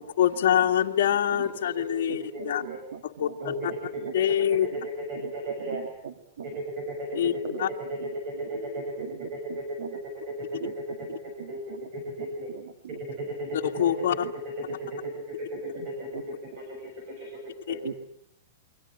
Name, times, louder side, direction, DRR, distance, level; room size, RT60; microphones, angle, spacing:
voice 1, 0.2-2.6 3.0-3.5 4.1-4.7 7.2-7.3 7.6-7.7 13.6-14.3 17.7-17.8, left 10 dB, 60° left, 1 dB, 1.9 m, -24 dB
voice 2, 1.6-2.0 2.3-2.8 3.4-3.6 4.2-4.3 4.6-5.9 6.4-7.1 7.9-8.9 9.3-11.1 11.5-11.6 11.9-12.5 13.2-13.6 14.9-18.0, right 1 dB, 30° right, 2 dB, 6.9 m, -35 dB
voice 3, 2.6-3.0 4.0-4.1 5.7-6.5 7.1-7.2 9.0-9.3 9.8-9.9 10.6-10.7 11.4-11.8 13.8-13.9 14.2-14.3 17.8-17.9, right 7 dB, 65° right, 8 dB, 2.4 m, -38 dB
28.5 x 24.0 x 7.8 m, 0.72 s
supercardioid pair, 175°, 0 cm